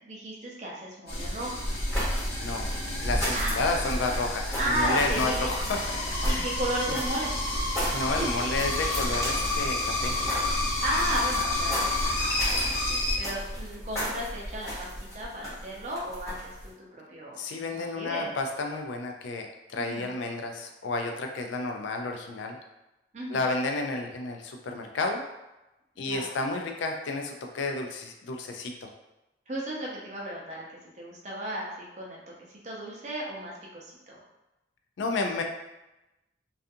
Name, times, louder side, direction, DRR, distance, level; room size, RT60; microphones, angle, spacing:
voice 1, 0.0-1.7 3.3-3.6 4.6-5.5 6.2-7.3 10.8-17.4 17.7-18.3 19.7-20.1 23.1-23.4 26.0-26.3 29.5-30.6 31.0-32.2 32.6-34.2, right 1 dB, 40° right, -3 dB, 0.5 m, -34 dB
sound 1, 1.1-13.2, left 2 dB, 50° left, 0.7 m, -30 dB
sound 2, 1.6-16.7, equal, 15° left, 0.8 m, -34 dB
voice 2, 3.0-6.5 6.9-7.0 7.9-10.2 17.4-22.6 23.3-25.2 26.0-28.9 35.0-35.4, left 3 dB, 85° left, 3 dB, 0.4 m, -31 dB
2.4 x 2.3 x 2.6 m, 0.98 s
head